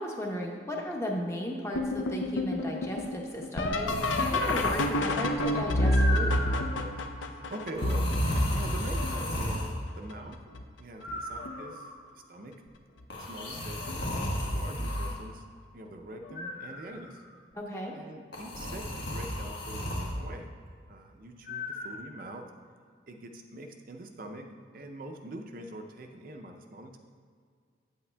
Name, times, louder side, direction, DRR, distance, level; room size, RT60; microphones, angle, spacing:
voice 1, 0.0-6.3 17.5-18.0, equal, 15° left, -1 dB, 0.8 m, -35 dB
sound 1, 1.7-9.4 10.1-10.6 11.1-11.7 13.0-13.1 13.8-14.1 16.3-16.4 18.7-18.8, left 1 dB, 90° left, 0.6 m, -29 dB
sound 2, 3.9-5.1 5.8-6.7 7.8-9.7 11.0-12.0 13.1-15.1 16.4-17.1 18.3-20.1 21.5-21.9, left 1 dB, 70° left, 1.4 m, -33 dB
voice 2, 7.2-10.4 10.8-12.6 13.2-14.0 14.4-15.4 15.7-17.2 17.9-20.5 20.9-22.5 23.1-24.5 24.7-27.0, right 1 dB, 45° right, 4 dB, 0.5 m, -44 dB
9.1 x 8.2 x 2.2 m, 2.1 s
head